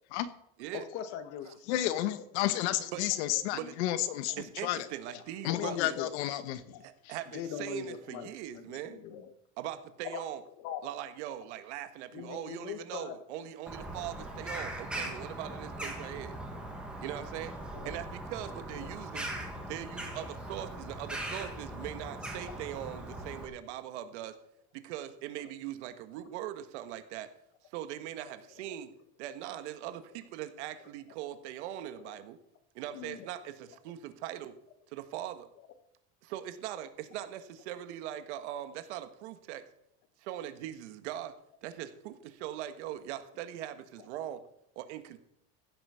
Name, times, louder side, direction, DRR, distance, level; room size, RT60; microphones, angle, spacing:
voice 1, 0.7-2.1 4.3-4.4 5.4-6.1 6.7-6.8 7.3-9.3 10.1-10.2 10.6-10.8 12.1-13.2 13.9-14.0 16.5-16.7 17.7-18.0 32.0-32.2 32.9-33.8 44.0-44.1, left 9 dB, 45° left, 9 dB, 1.4 m, -42 dB
voice 2, 1.7-4.3 4.6-4.9 5.4-6.8, left 13 dB, 80° left, 12 dB, 1.3 m, -31 dB
voice 3, 4.4-6.0 6.8-9.0 9.6-10.4 10.8-16.4 17.0-17.6 17.8-19.3 19.7-24.3 24.7-27.3 27.7-28.9 29.2-32.4 32.7-34.5 34.9-35.5 36.2-39.6 40.2-41.3 41.6-44.4 44.7-45.2, right 12 dB, 85° right, 10 dB, 1.5 m, -41 dB
Bird vocalization bird call bird song, 13.7-23.5, right 1 dB, 5° right, 1.6 m, -40 dB
15.5 x 8.1 x 5.7 m, 0.73 s
cardioid pair, 175°, 34 cm